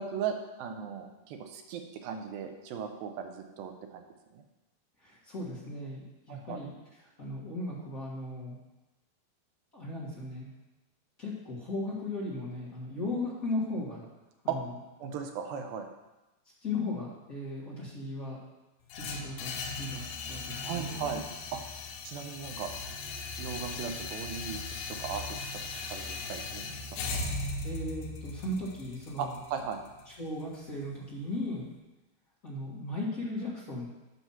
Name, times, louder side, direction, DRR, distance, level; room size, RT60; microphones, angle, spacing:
voice 1, 0.0-4.0 4.3-4.4 6.3-6.6 14.5-14.6 15.0-15.9 20.6-21.2 21.5-21.6 22.0-22.7 23.4-24.6 24.9-25.4 25.9-26.8 27.1-27.2 29.2-29.8, right 7 dB, 75° right, 5 dB, 2.4 m, -37 dB
voice 2, 5.0-6.7 7.2-8.6 9.7-10.5 11.2-14.0 14.4-14.6 16.6-18.4 18.9-20.0 20.3-21.2 27.6-29.4 30.2-31.7 32.4-33.9, left 2 dB, 40° left, -6 dB, 1.3 m, -36 dB
sound 1, 18.9-30.9, left 3 dB, 80° left, 2.8 m, -38 dB
8.2 x 6.1 x 5.7 m, 1.0 s
omnidirectional pair, 4.5 m